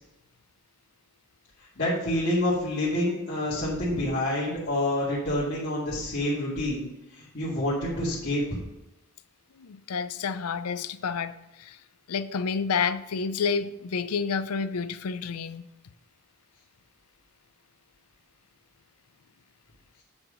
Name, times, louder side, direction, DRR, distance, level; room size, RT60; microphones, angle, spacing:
voice 1, 1.8-6.9 7.1-8.6, left 1 dB, 50° left, -10 dB, 2.3 m, -27 dB
voice 2, 9.6-11.3 11.6-11.8 12.1-15.7, left 5 dB, 90° left, 13 dB, 0.5 m, -29 dB
8.5 x 4.9 x 5.1 m, 0.95 s
head